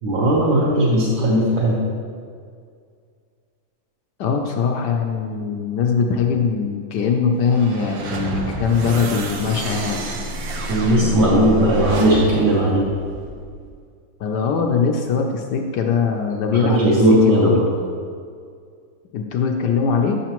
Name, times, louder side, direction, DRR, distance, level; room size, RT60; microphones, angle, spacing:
voice 1, 0.0-1.8 10.6-12.9 16.5-17.7, right 1 dB, 60° right, -6 dB, 1.6 m, -17 dB
voice 2, 4.2-10.1 14.2-16.8 17.1-17.5 19.1-20.2, left 6 dB, 70° left, 2 dB, 1.1 m, -21 dB
sound 1, 7.4-13.7, right 2 dB, 85° right, 1.7 m, -29 dB
10.0 x 6.4 x 3.0 m, 2.2 s
omnidirectional pair, 2.2 m